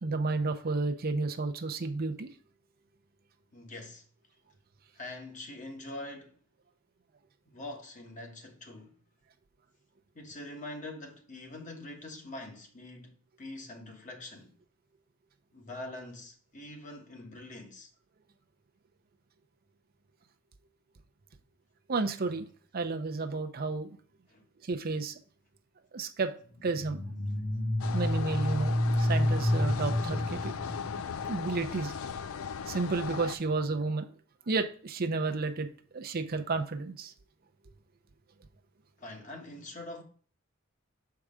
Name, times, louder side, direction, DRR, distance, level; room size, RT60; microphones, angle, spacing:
voice 1, 0.0-2.3 21.9-22.4 22.7-23.9 24.6-25.2 25.9-26.3 26.6-27.0 27.9-30.5 31.3-31.9 32.7-34.1 34.5-35.7 35.9-37.1, right 3 dB, 45° right, 0.6 m, -31 dB
voice 2, 3.5-4.0 4.9-6.4 7.5-9.0 10.1-14.5 15.5-17.9 24.3-24.4 39.0-40.0, left 2 dB, 40° left, 1.2 m, -44 dB
sound 1, 26.6-31.5, left 1 dB, 65° left, 1.6 m, -29 dB
sound 2, 27.8-33.4, left 6 dB, 85° left, 0.4 m, -38 dB
6.6 x 4.8 x 3.6 m
head